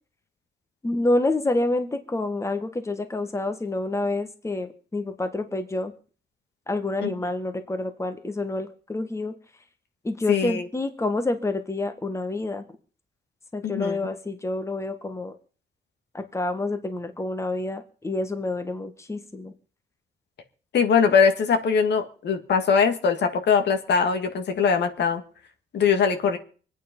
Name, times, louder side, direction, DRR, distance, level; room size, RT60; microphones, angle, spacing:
voice 1, 0.8-5.9 6.7-9.3 10.0-12.6 13.5-15.3 16.1-19.5, left 2 dB, 15° left, 8 dB, 1.5 m, -28 dB
voice 2, 10.3-10.7 13.6-14.0 20.7-25.2 25.7-26.4, left 6 dB, 70° left, 6 dB, 2.2 m, -21 dB
24.0 x 9.3 x 5.4 m, 0.40 s
cardioid pair, 115°, 18 cm